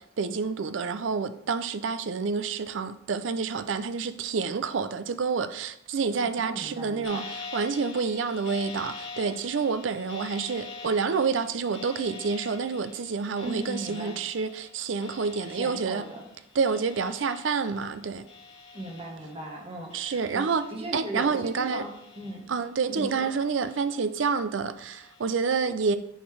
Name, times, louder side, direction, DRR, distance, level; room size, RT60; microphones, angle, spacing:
voice 1, 0.0-7.2 7.5-16.0 16.5-18.2 19.9-20.7 20.9-21.8 22.5-26.0, right 5 dB, 75° right, 0.5 m, -28 dB
voice 2, 6.2-7.3 13.4-14.1 15.5-16.3 18.7-22.5 22.9-23.4, right 1 dB, 30° right, 1.4 m, -38 dB
sound 1, 7.0-19.6 19.9-21.1 21.5-22.7 23.2-24.2 24.8-25.3, left 4 dB, 85° left, 2.1 m, -45 dB
9.9 x 4.4 x 3.3 m
head